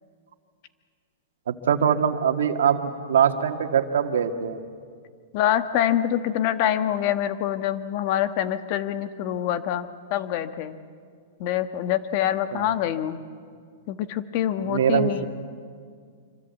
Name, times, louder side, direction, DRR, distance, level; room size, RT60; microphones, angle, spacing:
voice 1, 1.5-4.6 12.5-12.7 14.6-15.3, right 8 dB, 80° right, 7 dB, 1.8 m, -23 dB
voice 2, 5.3-10.8 11.4-13.2 13.9-15.3, left 11 dB, 45° left, 10 dB, 1.3 m, -25 dB
26.0 x 25.0 x 8.3 m, 2.1 s
hypercardioid pair, 140°, 0 cm